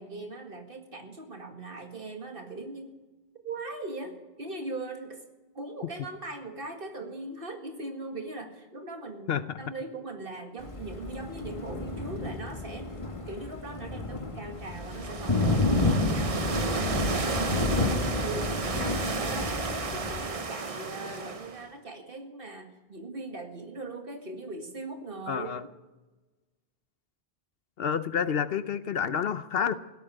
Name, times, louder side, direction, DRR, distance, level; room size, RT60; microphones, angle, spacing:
voice 1, 0.0-3.0 3.4-5.2 5.5-13.0 13.3-25.5, right 2 dB, 60° right, 2.1 m, -40 dB
voice 2, 9.3-9.6 25.3-25.6 27.8-29.7, left 7 dB, 70° left, 1.0 m, -29 dB
Thunder, 10.6-20.3, left 2 dB, 30° left, 1.6 m, -30 dB
sound 1, 14.6-21.7, right 4 dB, 35° right, 0.9 m, -33 dB
17.0 x 8.5 x 10.0 m
omnidirectional pair, 1.1 m